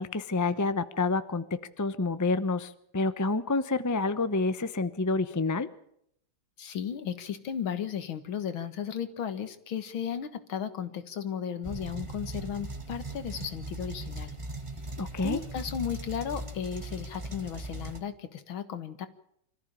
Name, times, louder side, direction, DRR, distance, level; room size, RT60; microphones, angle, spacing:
voice 1, 0.0-1.5 1.8-5.7 15.0-15.4, left 3 dB, 30° left, 12 dB, 0.3 m, -28 dB
voice 2, 6.6-14.4 15.2-19.1, left 8 dB, 75° left, 11 dB, 2.3 m, -35 dB
sound 1, 11.6-18.0, right 2 dB, 15° right, 1.4 m, -39 dB
25.0 x 14.5 x 8.7 m, 0.72 s
omnidirectional pair, 2.3 m